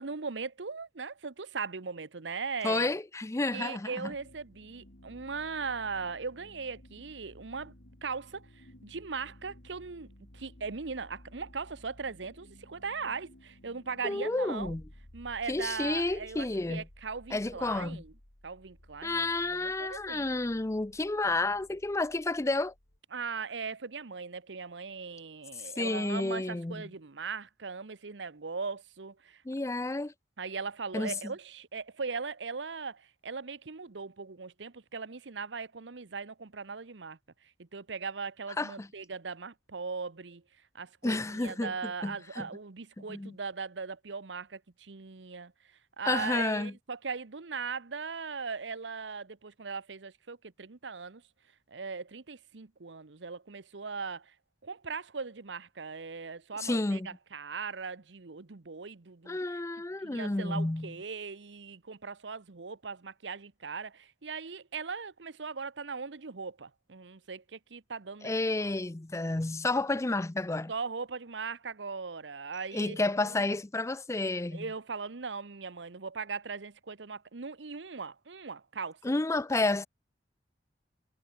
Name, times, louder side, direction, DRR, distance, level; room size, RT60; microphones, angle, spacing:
voice 1, 0.0-2.9 3.5-7.7 8.0-10.1 10.3-14.7 15.1-18.1 18.4-20.3 23.1-29.4 30.4-37.2 37.6-40.4 40.7-45.5 46.0-51.2 51.7-54.3 54.6-59.5 60.0-68.3 68.6-68.7 70.7-73.4 74.5-79.0, right 5 dB, 90° right, 1.0 m, -39 dB
voice 2, 2.6-4.1 14.0-14.8 15.5-16.8 17.3-18.0 19.0-22.7 25.8-26.8 29.5-30.1 30.9-31.3 38.6-38.9 41.0-42.5 43.1-43.4 46.0-46.7 56.6-57.1 59.3-60.9 68.2-70.7 72.7-74.7 79.0-79.9, left 2 dB, 15° left, 0.5 m, -31 dB
sound 1, 4.1-23.0, left 1 dB, 70° left, 3.8 m, -56 dB
head